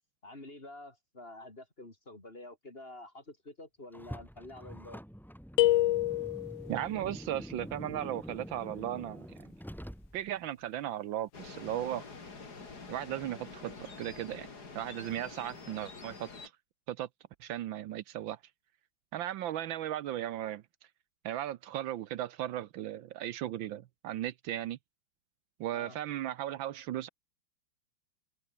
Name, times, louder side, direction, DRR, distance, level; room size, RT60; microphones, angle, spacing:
voice 1, 0.2-5.0 25.7-26.0, left 2 dB, 25° left, 4.5 m, -48 dB
Car, 3.9-10.4, equal, ahead, 6.6 m, -46 dB
sound 1, 5.6-6.8, left 15 dB, 75° left, 1.3 m, -26 dB
voice 2, 6.7-9.3 10.1-12.1 12.9-14.5 14.7-16.3 16.9-17.1 17.4-18.4 19.1-20.6 21.2-24.8 25.6-27.1, right 12 dB, 75° right, 1.5 m, -36 dB
sound 2, 11.3-16.5, left 4 dB, 50° left, 3.7 m, -47 dB
omnidirectional pair, 2.2 m